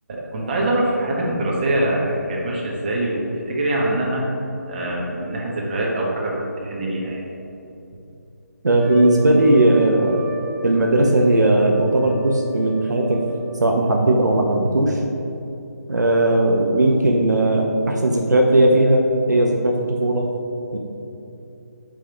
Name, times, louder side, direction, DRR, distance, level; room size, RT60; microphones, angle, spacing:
voice 1, 0.1-4.3 4.6-7.2, right 1 dB, 35° right, -3 dB, 1.3 m, -24 dB
voice 2, 8.6-10.3 10.6-13.2 13.6-15.0 15.9-20.3 20.7-20.8, right 1 dB, 75° right, 1 dB, 0.8 m, -17 dB
Trumpet, 8.8-13.8, left 3 dB, 5° right, 1.5 m, -37 dB
8.7 x 3.6 x 4.5 m, 2.9 s
figure-of-eight pair, 155°, 10 cm